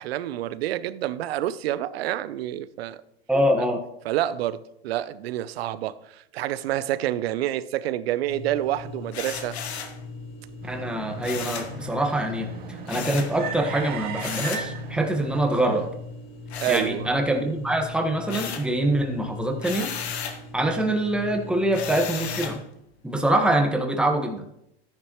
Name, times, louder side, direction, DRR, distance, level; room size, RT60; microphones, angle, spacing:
voice 1, 0.0-3.0 4.0-9.6 16.6-17.2, right 13 dB, 70° right, 0.8 m, -28 dB
voice 2, 3.3-3.8 10.7-15.9 16.7-19.9 20.2-22.6 23.0-24.4, right 1 dB, 5° right, 1.5 m, -24 dB
sound 1, 8.3-22.6, left 3 dB, 70° left, 5.2 m, -40 dB
sound 2, 9.1-10.0 11.2-11.8 12.9-13.4 14.2-14.7 16.5-17.4 17.7-18.7 19.6-20.4 21.7-22.6, left 7 dB, 85° left, 1.5 m, -34 dB
sound 3, 10.6-15.9, right 5 dB, 30° right, 1.9 m, -37 dB
13.5 x 10.0 x 3.1 m
hypercardioid pair, 120°, 32 cm